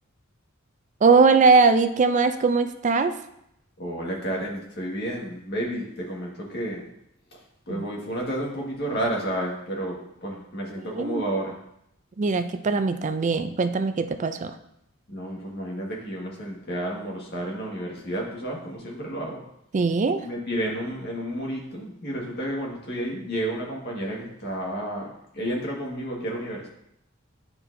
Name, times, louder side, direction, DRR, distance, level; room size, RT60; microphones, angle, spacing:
voice 1, 1.0-3.1 7.7-7.8 10.9-11.2 12.2-14.5 19.7-20.2, right 4 dB, 35° right, 9 dB, 0.4 m, -20 dB
voice 2, 3.8-6.9 7.7-11.6 15.1-19.4 20.2-25.1 25.3-26.7, right 1 dB, 55° left, -2 dB, 1.7 m, -31 dB
10.0 x 4.4 x 2.7 m, 0.77 s
head